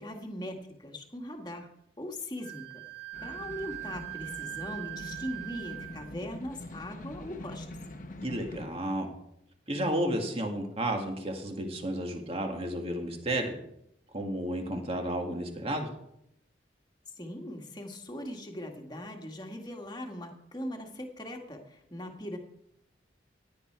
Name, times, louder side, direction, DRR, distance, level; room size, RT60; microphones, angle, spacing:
voice 1, 0.0-1.7 2.0-2.8 3.2-7.8 17.2-22.4, left 1 dB, 25° left, 3 dB, 1.8 m, -40 dB
Wind instrument woodwind instrument, 2.4-6.1, right 18 dB, 75° right, 1.2 m, -41 dB
sound 1, 3.1-8.6, left 1 dB, 45° left, 1.2 m, -44 dB
voice 2, 8.2-9.1 9.7-13.5 14.1-15.9, right 1 dB, 30° right, 3 dB, 2.1 m, -32 dB
17.0 x 11.0 x 4.7 m, 0.77 s
head